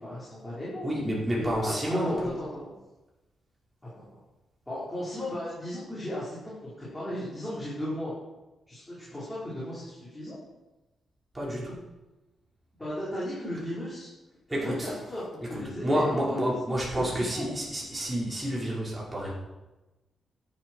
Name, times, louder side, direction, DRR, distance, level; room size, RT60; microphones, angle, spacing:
voice 1, 0.0-0.9 1.4-2.5 3.9-4.2 4.7-8.1 8.7-10.4 12.8-14.1 14.5-16.5 17.1-17.5, left 1 dB, 10° left, -9 dB, 5.0 m, -36 dB
voice 2, 0.8-2.3 11.3-11.8 14.5-14.9 15.4-19.3, equal, 15° right, -5 dB, 5.3 m, -29 dB
13.0 x 11.5 x 4.8 m, 1.1 s
cardioid pair, 120°, 0 cm